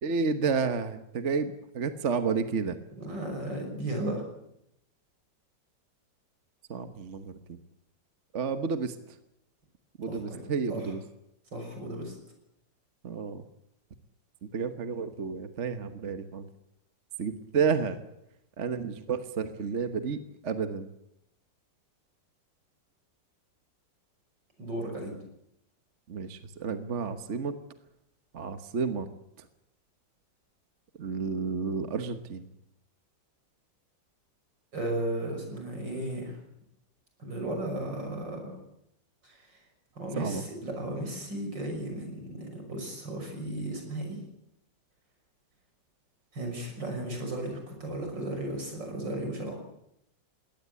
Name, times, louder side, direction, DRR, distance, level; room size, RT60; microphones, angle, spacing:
voice 1, 0.0-2.8 6.7-7.4 8.3-8.9 10.0-11.0 13.0-13.4 14.5-16.5 17.2-18.0 18.6-20.9 26.1-27.5 28.3-29.1 29.4-29.5 31.0-32.4 40.1-40.4, right 5 dB, 45° right, 9 dB, 1.4 m, -31 dB
voice 2, 3.0-4.2 10.1-10.4 10.7-10.9 11.5-12.1 24.6-25.2 34.7-36.4 37.2-38.6 39.2-39.6 39.9-44.2 46.3-49.6, right 1 dB, 75° right, 3 dB, 6.8 m, -35 dB
21.0 x 17.5 x 8.3 m, 0.79 s
omnidirectional pair, 2.0 m